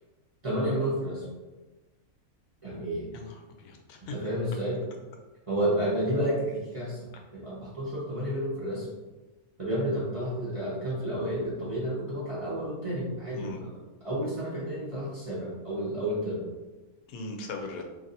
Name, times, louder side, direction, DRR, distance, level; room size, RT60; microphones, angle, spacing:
voice 1, 0.4-1.2 2.6-3.1 4.1-4.8 5.5-8.9 9.6-13.7 14.0-16.4, equal, 25° right, -9 dB, 0.8 m, -31 dB
voice 2, 3.1-4.1 7.1-7.2 13.3-13.6 17.1-17.8, left 2 dB, 90° left, 3 dB, 1.1 m, -39 dB
2.9 x 2.6 x 3.9 m, 1.2 s
omnidirectional pair, 1.6 m